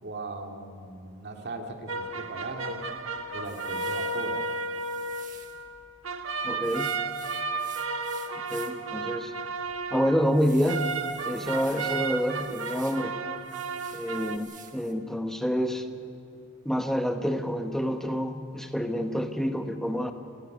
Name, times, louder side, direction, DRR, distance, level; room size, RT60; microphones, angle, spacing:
voice 1, 0.0-2.8 3.3-4.4, right 2 dB, 55° right, 2 dB, 2.2 m, -38 dB
sound 1, 1.9-14.4, right 3 dB, 80° right, 1.3 m, -33 dB
sound 2, 3.4-5.6 6.6-8.9 9.3-9.4 9.9-13.0 13.4-14.9, right 9 dB, 40° right, 1.5 m, -50 dB
voice 2, 6.4-7.0 8.5-9.3 9.9-11.0 11.2-13.2 13.9-15.9 16.6-20.1, equal, ahead, 6 dB, 1.1 m, -28 dB
29.0 x 11.5 x 9.4 m, 2.5 s
head